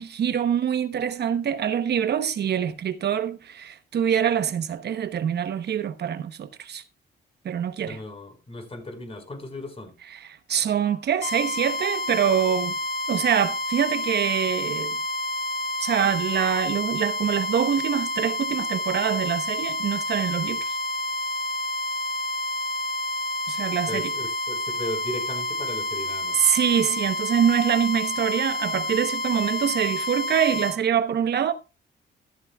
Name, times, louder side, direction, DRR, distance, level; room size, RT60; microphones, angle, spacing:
voice 1, 0.0-6.8 7.4-8.0 10.0-12.8 13.1-15.0 15.8-20.8 23.5-24.1 26.3-31.5, right 8 dB, 55° right, 1.0 m, -25 dB
voice 2, 7.8-9.9 23.9-26.4, left 1 dB, 30° left, 4.8 m, -36 dB
sound 1, 11.2-30.8, left 1 dB, 45° left, 7.3 m, -29 dB
14.0 x 13.0 x 2.3 m
cardioid pair, 90°, 20 cm